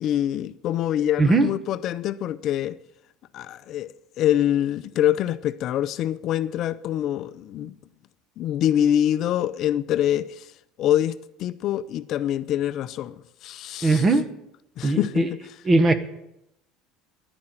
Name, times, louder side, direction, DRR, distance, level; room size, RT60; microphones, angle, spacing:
voice 1, 0.0-2.8 3.3-7.7 8.4-10.5 10.8-14.0 14.8-15.4, left 11 dB, 50° left, 0.5 m, -25 dB
voice 2, 1.2-1.5 13.8-14.3 14.8-15.3 15.6-15.9, right 3 dB, 20° right, 1.2 m, -19 dB
10.5 x 10.0 x 8.9 m
cardioid pair, 145°, 0 cm